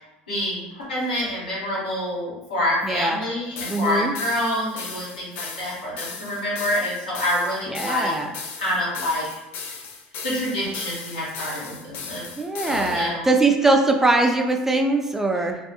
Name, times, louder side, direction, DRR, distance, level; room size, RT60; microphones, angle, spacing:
voice 1, 0.3-8.1 8.6-9.2 10.2-12.3 12.7-13.2, left 1 dB, 90° left, -8 dB, 1.1 m, -27 dB
voice 2, 2.8-3.2 3.7-4.1 7.7-8.3 12.4-15.6, right 2 dB, 10° right, 3 dB, 0.4 m, -21 dB
sound 1, 3.6-13.1, left 5 dB, 60° left, 0.4 m, -37 dB
2.3 x 2.1 x 2.9 m, 0.98 s
hypercardioid pair, 70°, 4 cm